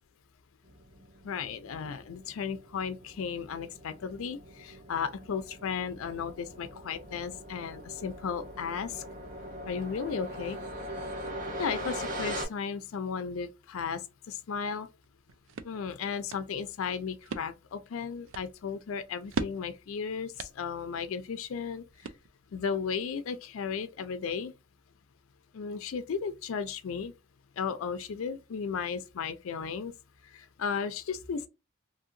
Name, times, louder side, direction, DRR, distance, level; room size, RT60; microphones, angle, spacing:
sound 1, 0.6-12.5, equal, 40° right, 1.0 m, -41 dB
voice 1, 1.2-9.0 9.7-10.6 11.6-14.0 14.3-14.9 15.6-21.8 22.5-24.5 25.5-27.1 27.6-29.9 30.3-31.5, left 6 dB, 80° left, 0.4 m, -35 dB
sound 2, 15.0-22.6, right 4 dB, 70° right, 0.4 m, -42 dB
2.8 x 2.8 x 2.5 m
head